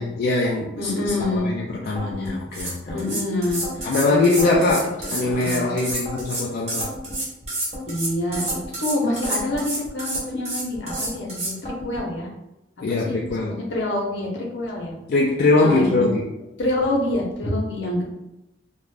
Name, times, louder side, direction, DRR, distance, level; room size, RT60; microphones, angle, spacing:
voice 1, 0.0-1.2 1.4-3.0 3.8-6.9 12.8-13.6 15.1-16.3, left 2 dB, 50° left, -3 dB, 0.3 m, -22 dB
voice 2, 0.8-1.5 2.9-3.7 4.0-4.5 5.4-5.7 7.9-12.3 12.9-14.9 15.6-16.1 16.6-18.1, left 1 dB, 70° left, -2 dB, 0.7 m, -26 dB
sound 1, 1.0-1.5 2.0-3.0 3.5-3.9 4.4-5.4 5.9-6.3 6.8-7.9 8.3-8.7 9.2-10.3 10.7-11.2 11.7-12.1, left 1 dB, 30° left, 0.7 m, -35 dB
sound 2, 2.3-2.4 2.5-11.6, right 2 dB, 35° right, 0.8 m, -29 dB
2.4 x 2.0 x 3.2 m, 0.92 s
head